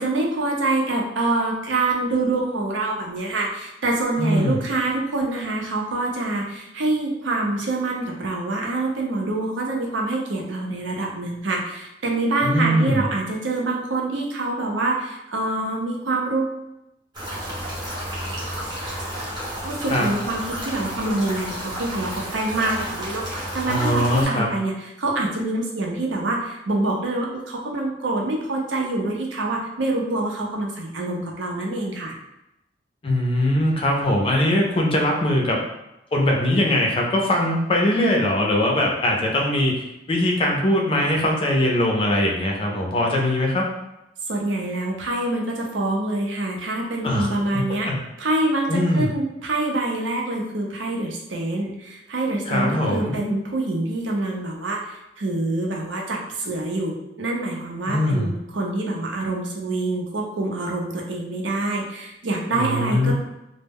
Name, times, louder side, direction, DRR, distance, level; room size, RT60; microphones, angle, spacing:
voice 1, 0.0-16.6 19.6-32.2 44.3-47.9 48.2-63.1, right 2 dB, 80° right, -1 dB, 0.6 m, -26 dB
voice 2, 4.2-4.6 12.4-13.0 19.9-20.1 23.6-24.5 33.0-35.6 36.1-39.8 40.1-43.6 47.0-47.3 47.5-48.0 48.7-49.1 52.5-53.1 57.9-58.3 62.5-63.1, left 1 dB, 30° left, 0 dB, 0.4 m, -21 dB
sound 1, 17.1-24.2, equal, 25° right, 0.7 m, -31 dB
2.1 x 2.0 x 3.4 m, 0.89 s
head